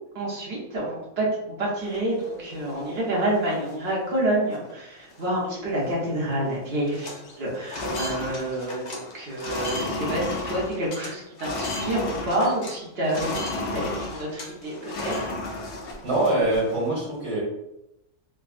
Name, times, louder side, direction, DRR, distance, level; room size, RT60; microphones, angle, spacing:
voice 1, 0.1-15.3, right 1 dB, 45° right, -5 dB, 1.0 m, -28 dB
sound 1, 1.8-2.9 3.4-3.5 3.7-4.1 4.5-4.7 5.0-6.1 6.3-6.6 6.8-12.8 13.0-16.9, left 2 dB, 65° left, 0.6 m, -33 dB
voice 2, 16.0-17.4, right 2 dB, 60° right, -6 dB, 1.9 m, -23 dB
3.5 x 2.1 x 2.4 m, 0.86 s
omnidirectional pair, 1.7 m